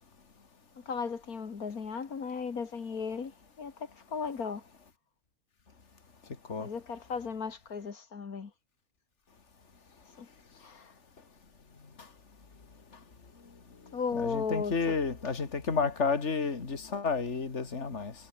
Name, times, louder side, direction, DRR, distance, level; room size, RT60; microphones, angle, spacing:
voice 1, 0.9-4.7 6.6-8.5 10.2-10.3 10.6-10.9 13.9-15.0, left 5 dB, 80° left, 2.4 m, -36 dB
voice 2, 14.3-18.1, left 5 dB, 50° left, 2.7 m, -31 dB
omnidirectional pair, 1.5 m